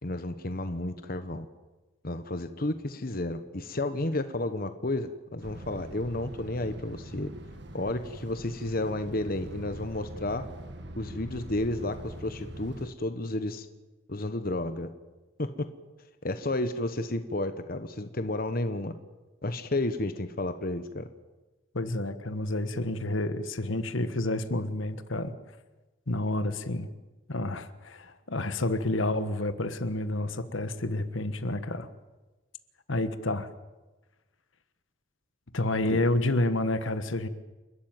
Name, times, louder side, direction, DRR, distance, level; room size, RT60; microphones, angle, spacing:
voice 1, 0.0-1.5 2.0-7.3 7.7-10.5 11.0-13.7 14.1-14.9 15.4-15.7 16.2-18.9 19.4-21.1 35.9-36.0, left 2 dB, 45° left, 9 dB, 1.1 m, -32 dB
sound 1, 5.4-12.9, right 1 dB, 60° right, 1.7 m, -43 dB
voice 2, 21.7-25.3 26.1-26.9 27.3-31.9 32.9-33.5 35.5-37.3, left 2 dB, 75° left, 11 dB, 1.4 m, -29 dB
29.0 x 12.5 x 9.1 m, 1.2 s
head